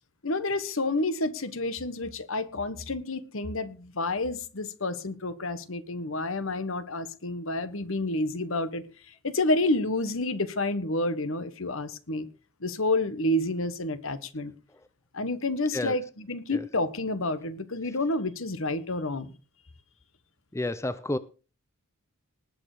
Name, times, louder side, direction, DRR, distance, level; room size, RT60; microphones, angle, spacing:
voice 1, 0.2-12.3 12.6-14.5 15.1-19.3, left 2 dB, 65° left, 13 dB, 1.3 m, -29 dB
voice 2, 20.5-21.2, left 1 dB, 15° left, 14 dB, 0.6 m, -30 dB
19.5 x 6.7 x 5.0 m, 0.34 s
head